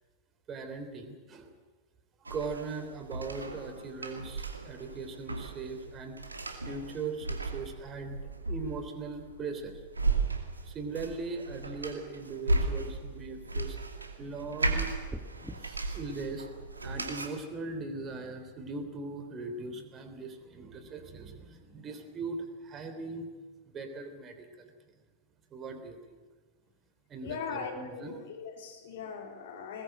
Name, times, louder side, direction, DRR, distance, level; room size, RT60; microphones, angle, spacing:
voice 1, 0.5-1.5 2.2-6.2 6.6-9.8 10.6-13.8 14.2-14.9 15.6-16.5 16.8-23.3 23.6-24.7 25.5-26.2 27.1-28.2, right 3 dB, 25° right, 7 dB, 3.4 m, -40 dB
sound 1, 2.3-17.3, right 3 dB, 80° right, 2.3 m, -35 dB
sound 2, 15.1-15.6, right 1 dB, 5° right, 1.7 m, -40 dB
voice 2, 27.2-29.8, left 5 dB, 55° left, 4 dB, 3.8 m, -40 dB
21.0 x 21.0 x 7.9 m, 1.4 s
figure-of-eight pair, 90°, 0 cm